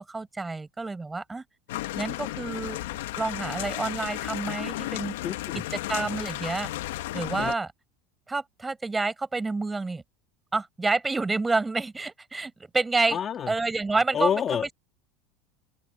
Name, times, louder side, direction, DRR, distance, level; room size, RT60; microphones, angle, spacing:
voice 1, 0.0-1.4 1.9-2.8 3.2-5.2 5.5-5.6 5.9-6.7 7.1-7.7 8.3-10.0 10.5-13.2 13.5-14.4, right 3 dB, 10° right, 4.4 m, -28 dB
sound 1, 1.7-7.5, left 16 dB, 90° left, 1.2 m, -33 dB
voice 2, 5.2-5.6 7.4-7.5 13.1-13.5 14.1-14.7, left 8 dB, 30° left, 1.7 m, -28 dB
open air
supercardioid pair, 130°, 0 cm